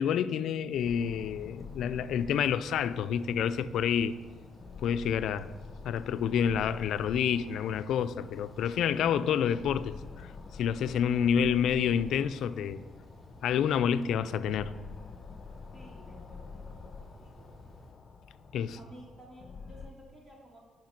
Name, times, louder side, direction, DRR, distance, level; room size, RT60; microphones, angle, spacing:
voice 1, 0.0-4.1 4.8-5.5 5.8-12.8 13.4-14.7 18.5-18.8, left 8 dB, 75° left, 0.4 m, -28 dB
sound 1, 0.7-17.9, right 1 dB, 10° right, 3.1 m, -55 dB
sound 2, 0.8-19.9, left 5 dB, 45° left, 0.8 m, -48 dB
voice 2, 15.7-17.5 18.7-20.6, right 1 dB, 35° right, 3.0 m, -54 dB
10.5 x 5.8 x 5.9 m
cardioid pair, 90°, 0 cm